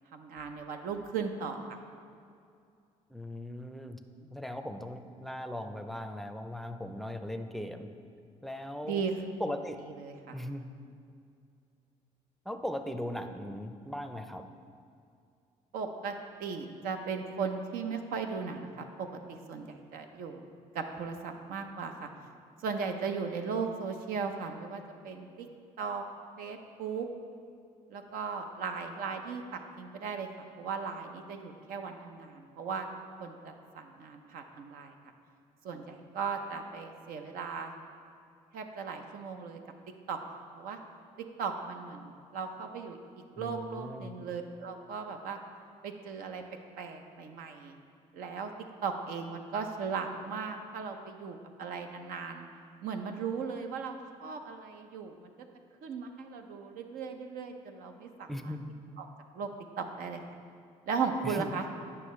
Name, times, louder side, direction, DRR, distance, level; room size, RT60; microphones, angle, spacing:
voice 1, 0.1-1.8 4.2-4.3 8.8-9.1 9.9-10.4 15.7-16.1 16.4-20.5 20.7-22.1 22.6-25.5 25.8-26.0 26.4-27.1 27.9-32.9 33.2-34.9 35.6-37.7 38.5-39.6 40.1-40.2 40.6-40.8 41.4-43.0 43.4-45.4 45.8-46.4 46.8-47.8 48.1-48.5 48.8-52.5 52.8-55.3 55.8-58.6 59.0-59.1 59.3-59.5 59.8-60.2 60.9-61.7, right 5 dB, 80° right, 5 dB, 0.6 m, -37 dB
voice 2, 3.1-4.0 4.3-7.9 8.4-9.0 9.4-9.8 10.3-10.7 12.5-14.5 43.4-44.1 58.3-58.6 61.2-61.5, left 1 dB, ahead, 7 dB, 0.5 m, -38 dB
9.8 x 5.7 x 3.1 m, 2.4 s
supercardioid pair, 80°, 15 cm